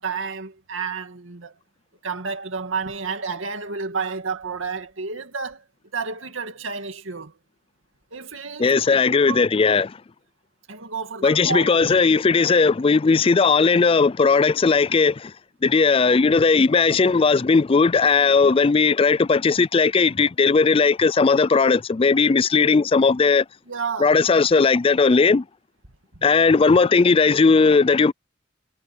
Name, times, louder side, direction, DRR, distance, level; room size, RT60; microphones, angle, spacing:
voice 1, 0.0-1.6 2.0-5.6 5.9-7.3 8.1-9.5 10.7-11.8 23.7-24.2 26.1-26.3, right 5 dB, 80° right, 2.4 m, -31 dB
voice 2, 8.6-9.9 11.2-15.3 15.6-23.4 24.0-25.4 26.2-28.1, left 4 dB, 30° left, 0.4 m, -17 dB
head